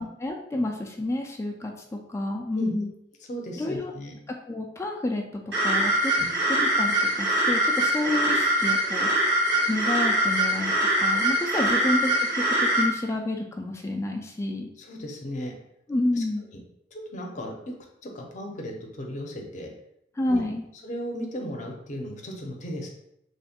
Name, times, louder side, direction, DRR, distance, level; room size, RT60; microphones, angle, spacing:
voice 1, 0.0-2.9 3.6-3.9 4.3-6.1 6.5-9.3 9.7-14.7 15.9-16.4 20.2-20.6, left 2 dB, 15° left, 1 dB, 0.3 m, -29 dB
voice 2, 3.3-4.1 6.2-6.3 11.1-11.2 14.8-15.5 16.2-16.3 16.9-17.5 18.0-19.7 20.3-20.4 20.8-22.9, equal, 45° left, 1 dB, 0.6 m, -36 dB
sound 1, 5.5-12.9, right 1 dB, 85° right, 1.5 m, -23 dB
3.1 x 2.1 x 4.2 m, 0.78 s
head